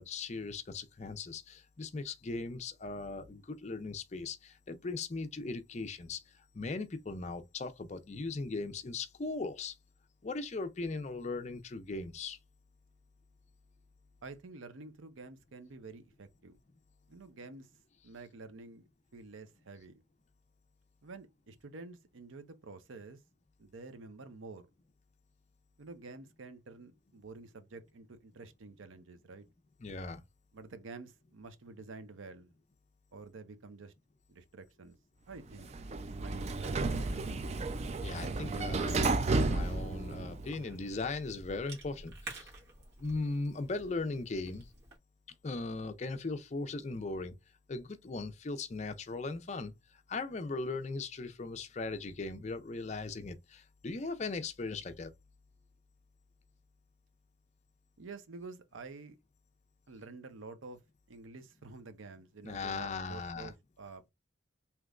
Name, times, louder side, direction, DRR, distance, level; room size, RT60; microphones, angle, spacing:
voice 1, 0.0-9.8 10.2-12.4 29.8-30.2 38.0-42.5 43.0-44.7 45.4-47.4 47.7-55.1 62.4-63.5, left 3 dB, 35° left, 0.4 m, -38 dB
voice 2, 14.2-16.6 17.1-17.7 18.0-20.0 21.0-23.2 23.6-24.7 25.8-29.5 30.5-32.5 33.1-33.9 34.3-35.0 35.3-37.4 58.0-59.2 59.9-60.8 61.1-64.1, right 3 dB, 85° right, 0.6 m, -49 dB
Sliding door, 35.5-40.7, right 3 dB, 35° right, 0.3 m, -32 dB
Cough / Chewing mastication, 39.0-45.0, right 2 dB, 60° right, 1.4 m, -51 dB
3.4 x 2.9 x 2.4 m
head